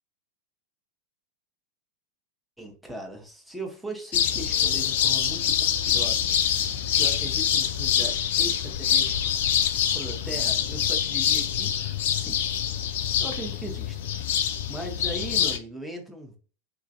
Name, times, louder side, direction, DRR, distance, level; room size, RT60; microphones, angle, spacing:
voice 1, 2.6-6.3 6.6-11.7 12.1-12.4 13.2-14.1 14.4-16.4, right 1 dB, 5° right, 2 dB, 0.6 m, -39 dB
sound 1, 4.1-15.6, left 9 dB, 55° left, 0.3 m, -25 dB
3.0 x 2.4 x 2.5 m, 0.37 s
figure-of-eight pair, 90°, 0 cm